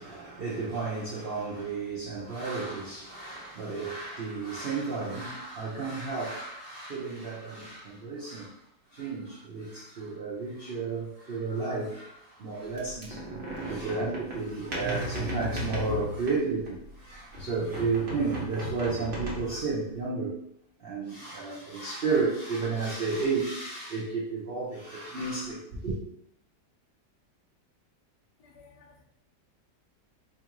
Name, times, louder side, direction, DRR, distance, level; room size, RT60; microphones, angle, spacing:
voice 1, 0.0-8.5 8.9-13.2 13.6-20.3 20.8-26.0, right 4 dB, 60° right, -7 dB, 0.6 m, -32 dB
sound 1, 12.8-17.0 17.3-19.7, equal, 45° right, 1.0 m, -36 dB
voice 2, 28.4-29.0, left 4 dB, 70° left, 0 dB, 1.3 m, -56 dB
4.3 x 2.5 x 2.9 m, 0.75 s
omnidirectional pair, 1.9 m